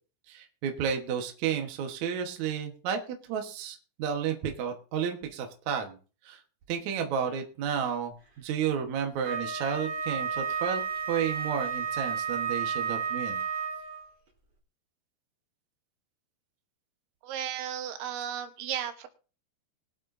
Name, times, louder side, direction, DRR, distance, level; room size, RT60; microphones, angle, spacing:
voice 1, 0.3-3.0 3.3-6.0 6.3-6.4 6.7-10.8 11.1-13.4, right 7 dB, 65° right, 4 dB, 1.8 m, -32 dB
Wind instrument woodwind instrument, 9.2-14.1, right 6 dB, 30° right, 3.4 m, -32 dB
voice 2, 17.2-19.1, right 9 dB, 85° right, 8 dB, 3.5 m, -34 dB
22.0 x 8.2 x 2.7 m, 0.36 s
omnidirectional pair, 5.2 m